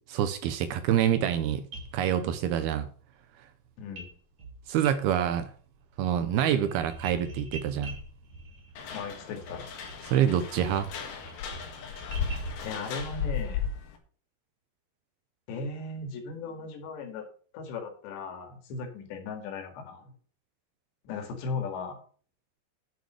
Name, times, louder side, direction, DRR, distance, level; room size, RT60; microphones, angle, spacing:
voice 1, 0.1-1.6 1.9-2.9 4.7-5.5 6.0-8.0 10.1-10.9, right 10 dB, 80° right, 10 dB, 2.5 m, -26 dB
sound 1, 1.7-2.7 4.0-4.1 4.4-5.4 5.7-12.7, right 2 dB, 45° right, 3.4 m, -44 dB
voice 2, 3.8-4.1 8.9-9.6 12.6-13.7 15.5-17.3 17.5-20.1 21.1-22.0, left 4 dB, 80° left, 5 dB, 4.3 m, -37 dB
sound 2, 8.8-14.0, left 7 dB, 65° left, 3.5 m, -36 dB
9.5 x 6.8 x 6.3 m, 0.43 s
omnidirectional pair, 5.0 m